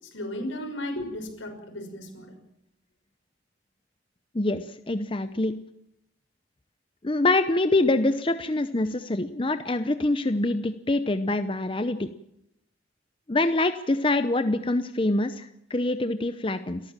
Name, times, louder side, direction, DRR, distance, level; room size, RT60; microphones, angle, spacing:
voice 1, 0.0-2.4, left 1 dB, 85° left, 4 dB, 5.9 m, -35 dB
voice 2, 4.3-5.5 7.0-12.1 13.3-16.8, left 2 dB, 25° left, 10 dB, 0.7 m, -25 dB
29.0 x 14.0 x 7.4 m, 0.79 s
head